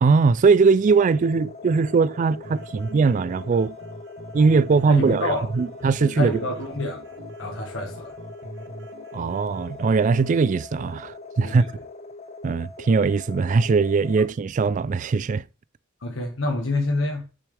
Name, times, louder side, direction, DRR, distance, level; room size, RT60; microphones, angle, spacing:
voice 1, 0.0-3.8 4.3-6.4 9.1-11.6 12.4-15.4, right 4 dB, 40° right, 0.3 m, -20 dB
sound 1, 0.9-14.3, left 3 dB, 35° left, 0.6 m, -41 dB
sound 2, 2.4-10.4, right 1 dB, 60° right, 0.9 m, -42 dB
voice 2, 4.9-5.5 6.0-8.2 11.4-11.7 16.0-17.2, left 2 dB, 65° left, 1.5 m, -28 dB
6.8 x 6.2 x 3.3 m
head